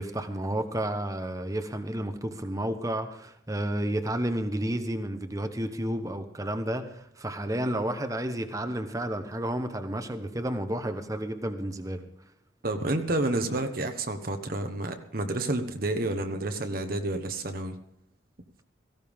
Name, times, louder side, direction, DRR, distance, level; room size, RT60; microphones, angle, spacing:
voice 1, 0.0-12.0, right 1 dB, 15° right, 8 dB, 1.0 m, -31 dB
voice 2, 12.6-17.8, right 2 dB, 50° right, 6 dB, 1.1 m, -30 dB
17.5 x 16.0 x 3.6 m, 0.74 s
head